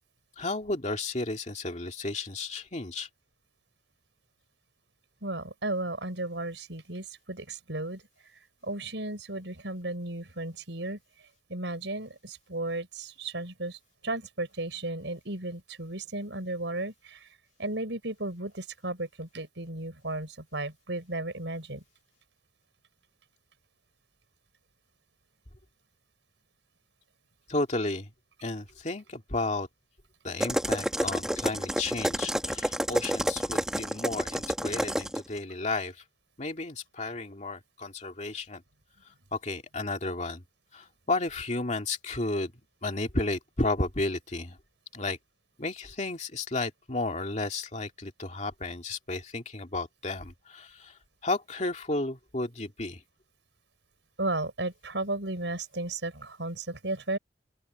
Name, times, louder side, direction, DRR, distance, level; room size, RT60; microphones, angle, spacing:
voice 1, 0.4-3.1 27.5-28.1 28.4-29.7 30.2-36.0 36.4-38.6 39.3-40.4 40.7-42.5 42.8-44.6 44.9-45.2 45.6-53.0, left 2 dB, 40° left, 2.3 m, -33 dB
voice 2, 5.2-8.0 8.6-11.0 11.5-17.3 17.6-21.8 54.2-57.2, right 2 dB, 85° right, 5.5 m, -34 dB
sound 1, 30.4-35.2, equal, 5° right, 1.3 m, -29 dB
open air
head